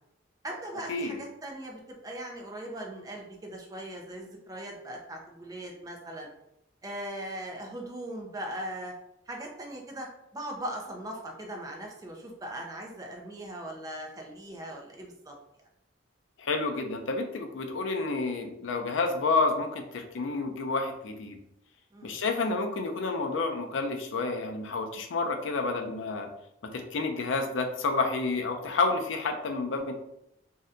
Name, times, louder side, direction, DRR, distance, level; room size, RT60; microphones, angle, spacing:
voice 1, 0.4-6.3 6.8-8.9 9.3-10.1 10.3-15.3 21.9-22.2, right 1 dB, 20° right, 0 dB, 0.4 m, -39 dB
voice 2, 16.4-21.4 22.0-26.3 26.7-29.9, left 3 dB, 75° left, 5 dB, 0.5 m, -29 dB
2.7 x 2.2 x 3.6 m, 0.81 s
head